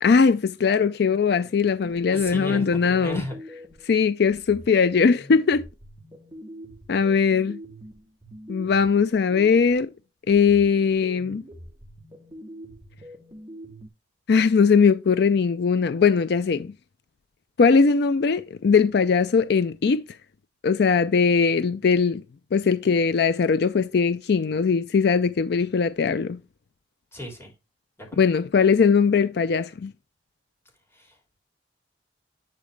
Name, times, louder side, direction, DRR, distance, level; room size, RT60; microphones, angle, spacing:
voice 1, 0.0-3.2 3.8-5.6 6.9-7.6 8.5-9.9 10.3-11.4 14.3-16.7 17.6-20.0 20.6-22.2 22.5-26.4 28.2-29.9, left 5 dB, 65° left, 0.4 m, -20 dB
sound 1, 1.8-3.9 4.3-9.9 10.3-13.9, equal, 20° right, 2.6 m, -44 dB
voice 2, 2.1-3.4 27.1-27.5 28.0-28.2 30.9-31.2, left 1 dB, 15° left, 3.2 m, -35 dB
11.0 x 4.2 x 3.3 m
head